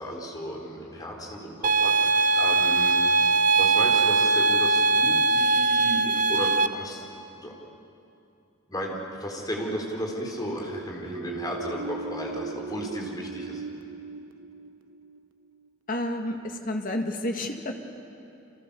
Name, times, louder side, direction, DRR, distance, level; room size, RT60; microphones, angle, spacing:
voice 1, 0.0-7.1 7.3-7.5 8.7-13.6, equal, 20° left, 0 dB, 4.1 m, -34 dB
sound 1, 1.6-6.7, right 3 dB, 40° right, 0.7 m, -21 dB
sound 2, 10.0-15.7, right 4 dB, 70° right, 1.0 m, -39 dB
voice 2, 15.9-17.8, left 1 dB, 40° left, 4 dB, 2.1 m, -30 dB
30.0 x 27.0 x 7.0 m, 2.7 s
head